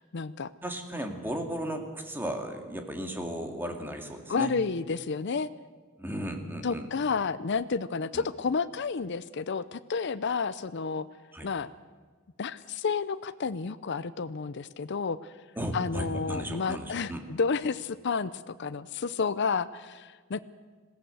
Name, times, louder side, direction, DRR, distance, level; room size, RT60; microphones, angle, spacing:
voice 1, 0.0-0.5 4.3-5.5 6.6-11.1 11.4-11.7 12.4-15.2 15.7-20.4, left 5 dB, 60° left, 13 dB, 0.6 m, -31 dB
voice 2, 0.6-4.5 6.0-6.9 8.1-8.2 11.3-11.5 15.6-17.2, equal, 10° right, 3 dB, 2.3 m, -35 dB
20.5 x 16.0 x 7.9 m, 1.5 s
head